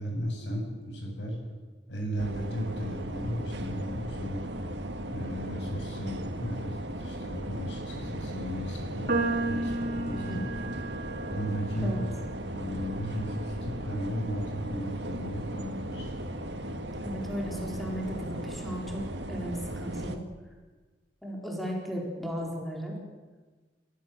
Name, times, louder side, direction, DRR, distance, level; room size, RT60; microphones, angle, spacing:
voice 1, 0.0-1.4 1.9-4.4 5.1-10.5 11.3-12.0 12.5-16.2, equal, 80° left, 1 dB, 7.8 m, -35 dB
sound 1, 2.2-20.2, right 1 dB, 75° right, 2.0 m, -37 dB
sound 2, 9.1-15.4, right 2 dB, 55° right, 4.4 m, -35 dB
voice 2, 10.1-10.4 11.8-12.0 17.0-20.2 21.2-23.0, equal, ahead, -1 dB, 4.2 m, -35 dB
29.0 x 15.0 x 7.7 m, 1.3 s
head